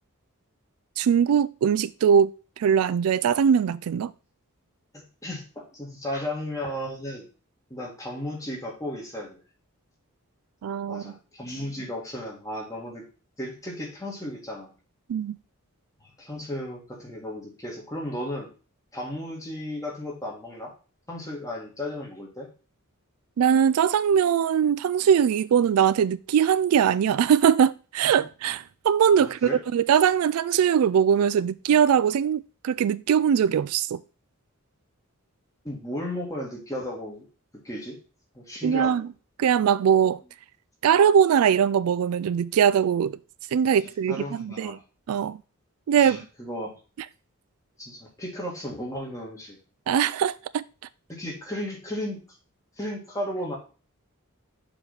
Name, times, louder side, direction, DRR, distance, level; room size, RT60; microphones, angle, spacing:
voice 1, 1.0-4.1 10.6-11.1 15.1-15.4 23.4-34.0 38.6-39.1 39.4-40.2 40.8-43.2 43.5-44.8 45.1-45.4 45.9-46.2 49.9-50.6, right 8 dB, 75° right, 0.3 m, -21 dB
voice 2, 4.9-7.3 7.7-9.4 10.9-13.0 13.4-14.7 16.2-18.5 18.9-20.7 21.1-22.5 29.2-29.6 35.6-37.2 37.6-38.0 38.3-39.0 44.1-44.8 46.0-46.8 47.8-49.6 51.1-52.2 52.8-53.6, left 1 dB, 15° left, 2.0 m, -34 dB
7.0 x 3.6 x 5.7 m
head